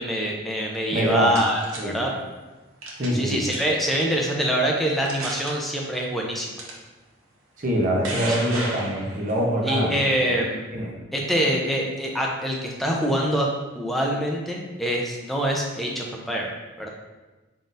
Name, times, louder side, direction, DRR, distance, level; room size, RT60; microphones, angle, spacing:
voice 1, 0.0-2.1 3.1-6.5 9.6-10.7 11.1-13.5 13.7-16.9, equal, ahead, -1 dB, 0.4 m, -25 dB
voice 2, 0.9-1.3 1.8-1.9 3.0-3.4 7.6-10.0 10.7-10.9, right 1 dB, 40° right, -2 dB, 0.7 m, -24 dB
sound 1, 0.9-1.8 2.8-3.2 3.5-3.8 4.5-4.6 5.0-5.5 6.6-6.7 7.6-9.4, right 2 dB, 90° right, 0.8 m, -33 dB
3.9 x 3.9 x 2.5 m, 1.2 s
head